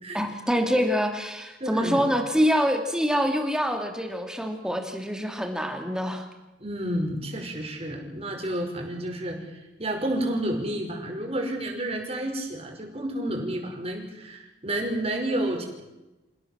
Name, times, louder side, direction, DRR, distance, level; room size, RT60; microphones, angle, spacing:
voice 1, 0.1-6.3, equal, 5° right, 4 dB, 2.8 m, -25 dB
voice 2, 1.6-2.0 6.6-15.6, right 1 dB, 30° right, 2 dB, 5.5 m, -30 dB
28.5 x 16.5 x 7.5 m, 1.0 s
head